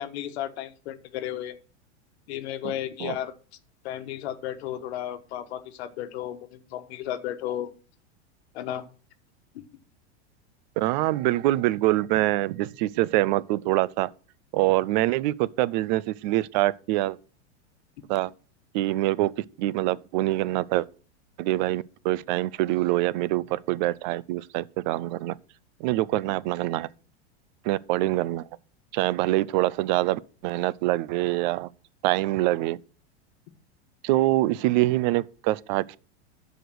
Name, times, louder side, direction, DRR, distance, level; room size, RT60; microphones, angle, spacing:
voice 1, 0.0-1.6 2.3-3.3 3.8-7.7 8.5-8.8 9.5-9.6, left 11 dB, 65° left, 1.4 m, -34 dB
voice 2, 10.8-14.1 14.5-17.2 18.1-18.3 18.7-20.9 21.4-25.4 25.8-26.9 27.6-28.5 28.9-31.7 32.0-32.8 34.0-36.0, right 17 dB, 40° right, 0.4 m, -25 dB
13.0 x 5.0 x 6.1 m
supercardioid pair, 155°, 34 cm